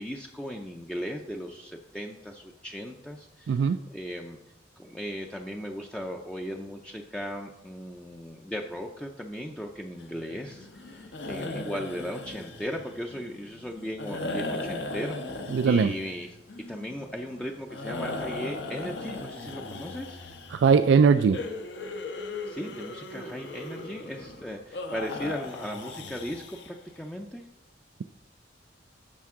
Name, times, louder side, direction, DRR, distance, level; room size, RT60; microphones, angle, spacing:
voice 1, 0.0-4.4 4.8-16.4 16.6-20.2 22.4-27.5, equal, 5° left, 1 dB, 0.5 m, -37 dB
voice 2, 3.5-3.8 15.5-15.9 20.5-21.4, right 5 dB, 75° right, 11 dB, 0.3 m, -20 dB
sound 1, 10.0-27.0, left 2 dB, 70° left, 1.0 m, -38 dB
10.5 x 6.7 x 3.7 m, 0.93 s
head